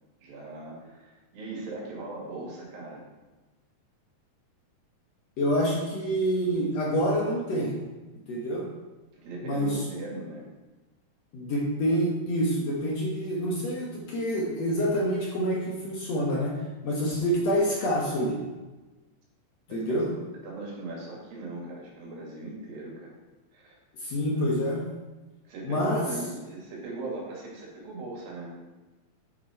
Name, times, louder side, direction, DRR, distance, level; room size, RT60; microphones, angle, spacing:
voice 1, 0.2-3.0 9.1-10.5 19.7-23.2 23.5-23.8 25.5-28.5, right 2 dB, 75° right, -3 dB, 3.9 m, -39 dB
voice 2, 5.4-7.8 8.3-8.7 9.4-9.8 11.3-18.4 19.7-20.1 24.0-24.8 25.6-26.1, equal, 60° left, -3 dB, 2.0 m, -27 dB
8.9 x 7.3 x 4.4 m, 1.2 s
omnidirectional pair, 4.1 m